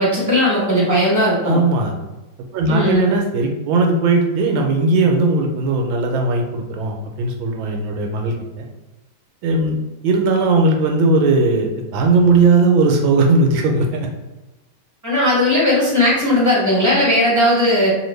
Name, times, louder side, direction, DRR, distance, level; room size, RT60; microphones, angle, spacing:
voice 1, 0.0-1.6 2.7-3.1 15.0-18.0, left 1 dB, 10° right, -7 dB, 1.1 m, -17 dB
voice 2, 1.4-1.9 2.5-8.7 9.4-14.1, right 3 dB, 80° right, 2 dB, 1.4 m, -18 dB
2.9 x 2.8 x 3.1 m, 1.1 s
omnidirectional pair, 2.2 m